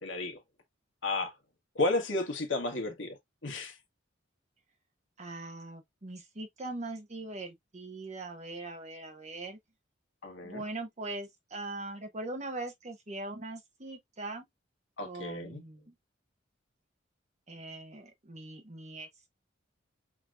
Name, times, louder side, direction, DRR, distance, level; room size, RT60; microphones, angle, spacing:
voice 1, 0.0-0.4 1.0-1.3 1.7-3.8 10.2-10.6 15.0-15.6, left 2 dB, 70° left, 1.4 m, -33 dB
voice 2, 5.2-9.6 10.4-14.4 15.0-15.9 17.5-19.1, right 2 dB, 35° right, 1.2 m, -41 dB
5.9 x 2.9 x 2.4 m
head